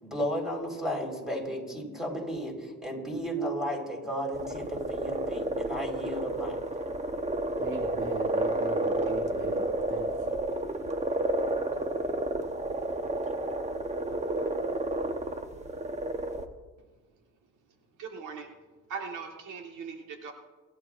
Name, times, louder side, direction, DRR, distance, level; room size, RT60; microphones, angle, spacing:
voice 1, 0.0-6.6, equal, ahead, 0 dB, 4.7 m, -34 dB
sound 1, 4.3-16.4, right 2 dB, 20° right, 1.2 m, -31 dB
voice 2, 7.6-10.4, right 4 dB, 40° right, 1 dB, 1.4 m, -38 dB
voice 3, 18.0-18.5 18.9-20.3, right 5 dB, 80° right, 2 dB, 1.7 m, -39 dB
28.5 x 11.5 x 2.6 m, 1.2 s
cardioid pair, 90°, 30 cm